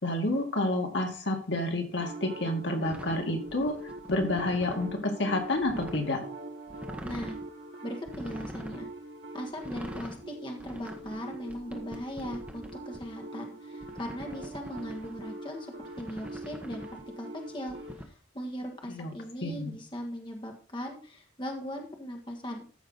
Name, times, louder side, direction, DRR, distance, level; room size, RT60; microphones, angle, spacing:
voice 1, 0.0-3.8 4.1-6.2 18.9-19.1 19.4-19.7, left 1 dB, 70° left, 3 dB, 2.1 m, -29 dB
sound 1, 2.0-18.0, right 2 dB, 80° right, 1.6 m, -43 dB
sound 2, 2.8-4.9 5.4-6.1 6.7-7.4 8.1-8.8 9.5-10.2 10.6-13.0 13.8-15.2 15.8-17.0 17.7-18.0, equal, 5° right, 1.2 m, -44 dB
voice 2, 7.0-7.4 7.8-8.9 9.3-22.6, equal, 25° left, 1 dB, 1.7 m, -39 dB
14.0 x 6.0 x 4.1 m, 0.39 s
head